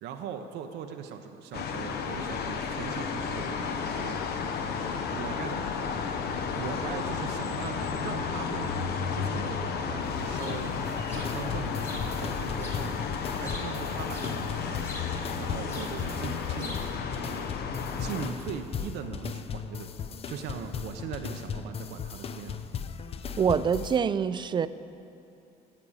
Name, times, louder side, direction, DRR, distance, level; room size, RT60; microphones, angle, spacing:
voice 1, 0.0-4.2 4.6-6.3 6.5-10.8 11.2-13.1 13.4-14.9 15.4-17.7 18.0-22.6, right 7 dB, 80° right, 0.7 m, -40 dB
sound 1, 1.5-18.3, left 6 dB, 70° left, 0.8 m, -32 dB
sound 2, 10.0-16.9, left 1 dB, 15° left, 1.5 m, -46 dB
sound 3, 10.8-24.0, left 7 dB, 35° left, 0.5 m, -37 dB
voice 2, 23.4-24.7, right 7 dB, 25° right, 0.3 m, -25 dB
14.5 x 5.1 x 7.2 m
cardioid pair, 110°, 17 cm